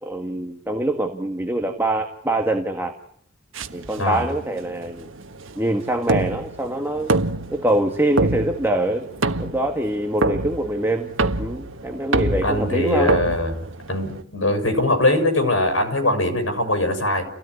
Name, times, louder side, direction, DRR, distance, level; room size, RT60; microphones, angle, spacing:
voice 1, 0.0-2.9 3.7-5.1 5.5-7.1 7.5-9.1 9.4-11.1 11.4-13.2, right 1 dB, 10° right, 4 dB, 1.9 m, -24 dB
sound 1, 3.5-14.2, right 2 dB, 90° right, 1.4 m, -27 dB
voice 2, 12.4-13.6 13.9-17.3, left 1 dB, 80° left, 6 dB, 6.9 m, -21 dB
30.0 x 17.5 x 10.0 m, 0.70 s
head